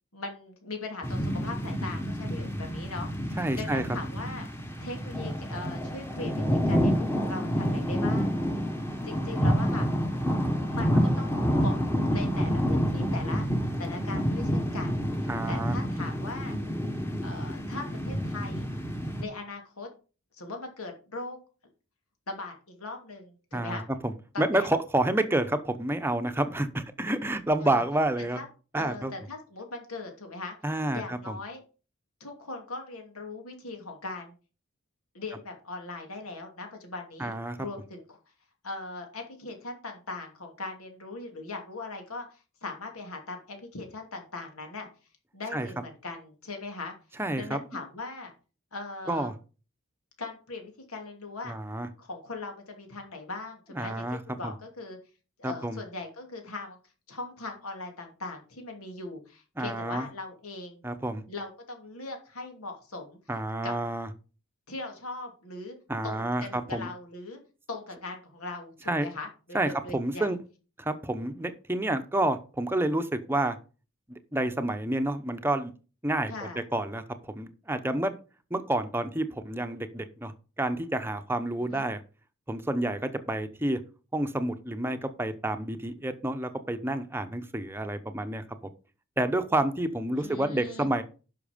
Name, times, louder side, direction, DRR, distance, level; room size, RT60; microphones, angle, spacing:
voice 1, 0.1-4.5 4.8-8.3 9.0-9.9 10.7-13.5 13.8-16.5 17.2-18.7 19.2-19.9 20.4-21.4 22.3-23.9 24.3-24.7 27.6-27.8 28.3-28.5 28.7-30.6 30.9-31.6 32.2-34.3 35.1-38.2 38.6-44.9 45.3-46.9 47.4-48.3 48.7-49.3 50.2-51.5 52.0-55.0 55.4-56.8 57.1-60.8 61.3-63.2 63.6-63.7 64.7-65.8 66.0-67.4 67.7-70.3 76.3-76.6 81.6-81.9 90.2-90.9, left 3 dB, 85° left, 3 dB, 2.7 m, -40 dB
sound 1, 1.0-19.2, equal, 10° left, 1.2 m, -28 dB
voice 2, 3.4-4.0 15.3-15.8 23.5-28.4 28.7-29.1 30.6-31.4 37.2-37.6 45.5-45.8 47.2-47.6 49.1-49.3 51.4-51.9 53.7-54.5 55.4-55.8 59.6-60.1 60.8-61.2 63.3-64.1 65.9-66.9 68.9-69.1 69.5-70.4 70.8-73.6 74.1-75.7 76.0-78.1 78.5-82.0 82.5-83.8 84.1-88.4 89.2-91.0, right 1 dB, 10° right, 9 dB, 0.8 m, -29 dB
10.5 x 6.0 x 5.1 m, 0.35 s
head